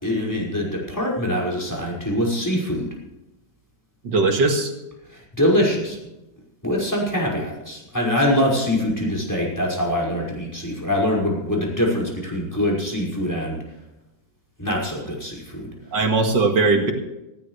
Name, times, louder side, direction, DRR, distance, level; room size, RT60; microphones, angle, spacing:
voice 1, 0.0-2.9 5.1-6.0 6.6-13.6 14.6-15.7, left 1 dB, 10° left, -2 dB, 5.5 m, -23 dB
voice 2, 4.0-4.7 15.9-16.9, right 3 dB, 80° right, 3 dB, 2.7 m, -19 dB
19.5 x 16.0 x 3.3 m, 0.96 s
omnidirectional pair, 1.9 m